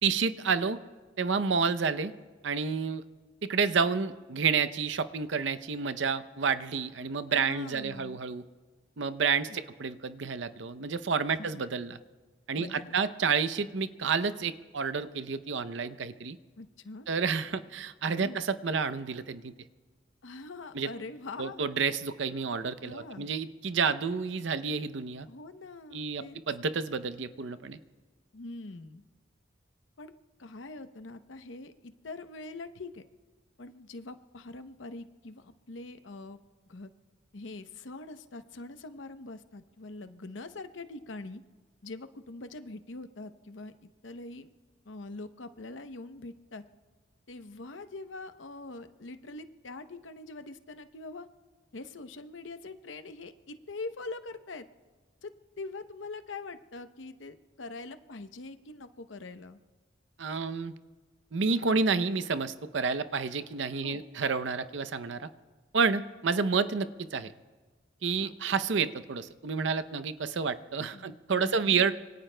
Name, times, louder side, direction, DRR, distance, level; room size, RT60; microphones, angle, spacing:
voice 1, 0.0-0.8 1.2-2.1 2.4-3.0 3.4-8.4 9.0-12.0 12.5-16.4 17.1-19.5 20.7-20.9 21.4-25.3 25.9-27.8 60.2-60.7 61.3-65.3 65.7-67.3 68.0-71.9, right 5 dB, 70° right, 12 dB, 0.6 m, -30 dB
voice 2, 7.3-8.2 9.5-9.6 11.4-11.6 12.5-13.0 16.6-17.1 18.2-18.4 20.2-21.6 22.8-23.3 25.3-26.4 28.3-29.0 30.0-30.1 30.4-33.0 33.6-36.4 36.7-36.9 37.3-41.4 41.8-43.7 44.0-44.5 44.9-46.6 47.3-51.3 51.7-54.7 55.2-55.3 55.6-59.6 61.6-61.8 63.8-64.0 68.2-68.3 70.9-71.9, left 3 dB, 75° left, 9 dB, 0.8 m, -43 dB
26.5 x 24.0 x 2.2 m, 1.4 s
head